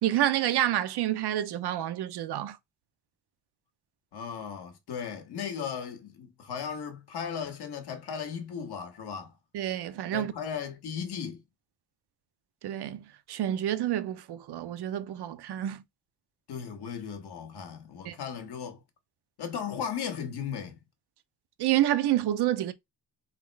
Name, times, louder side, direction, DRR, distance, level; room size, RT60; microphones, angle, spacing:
voice 1, 0.0-2.6 9.5-10.3 12.6-15.8 18.0-18.2 21.6-22.7, right 12 dB, 90° right, 0.7 m, -28 dB
voice 2, 4.1-9.3 10.1-11.4 16.5-18.8 19.4-20.8, left 7 dB, 80° left, 1.4 m, -36 dB
3.7 x 3.1 x 4.5 m
cardioid pair, 120°, 39 cm